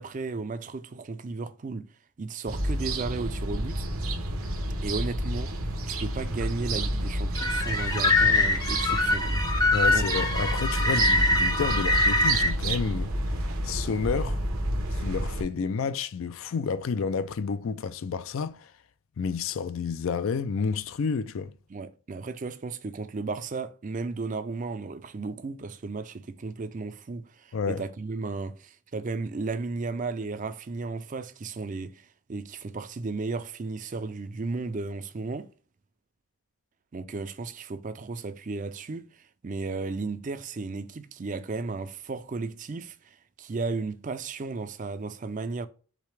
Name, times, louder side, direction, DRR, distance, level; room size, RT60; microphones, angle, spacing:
voice 1, 0.0-1.9 2.2-3.9 4.8-5.6 5.9-9.4 9.9-10.1 21.7-35.5 36.9-45.7, right 3 dB, 35° right, 0.4 m, -34 dB
sound 1, 2.5-15.4, right 1 dB, 80° right, 0.9 m, -30 dB
sound 2, 7.4-12.5, left 2 dB, 15° left, 0.5 m, -24 dB
voice 2, 9.7-13.1 13.6-14.4 14.9-18.7 19.2-21.5 27.5-27.8, left 5 dB, 70° left, 0.4 m, -30 dB
5.0 x 3.2 x 3.2 m
head